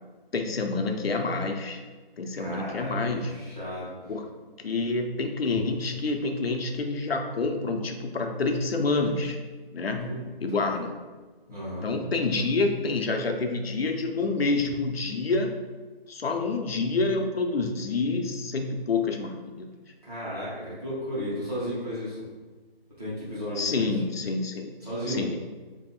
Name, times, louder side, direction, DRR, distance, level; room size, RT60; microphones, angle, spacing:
voice 1, 0.3-1.8 2.2-3.4 4.1-4.3 4.6-9.4 9.7-10.9 11.8-15.6 16.1-19.7 23.6-24.7 25.1-25.4, left 3 dB, 75° left, 3 dB, 0.6 m, -28 dB
voice 2, 2.4-3.9 10.0-10.2 10.5-10.7 11.5-11.9 20.0-22.2 23.0-23.9 24.8-25.2, equal, 40° right, -10 dB, 1.3 m, -34 dB
3.0 x 2.7 x 4.0 m, 1.3 s
figure-of-eight pair, 180°, 30 cm